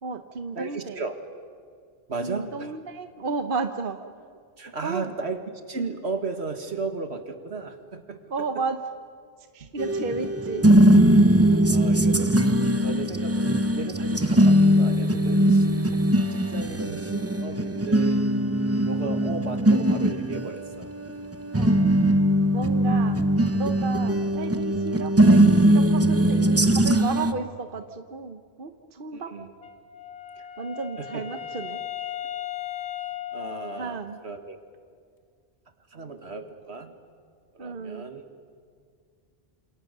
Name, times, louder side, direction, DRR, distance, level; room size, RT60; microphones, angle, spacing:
voice 1, 0.0-1.0 2.2-4.0 4.8-5.1 8.3-8.8 9.5-10.6 15.9-16.0 19.0-19.2 21.5-21.9 22.5-23.2 23.5-29.3 30.6-31.8 33.8-34.2 37.6-38.1, right 4 dB, 55° right, 8 dB, 1.2 m, -33 dB
voice 2, 0.6-1.2 2.1-2.8 4.6-5.4 5.7-8.6 9.6-9.7 11.3-11.4 11.7-12.5 12.8-15.7 16.3-18.4 18.9-20.9 29.1-29.5 31.0-31.2 33.3-34.6 35.9-36.9 37.5-38.2, right 4 dB, 80° right, 7 dB, 2.1 m, -35 dB
sound 1, 9.8-27.3, right 1 dB, 15° right, 0.8 m, -20 dB
Wind instrument woodwind instrument, 29.6-34.4, left 11 dB, 80° left, 1.6 m, -36 dB
28.0 x 27.5 x 6.8 m, 2.1 s
omnidirectional pair, 1.1 m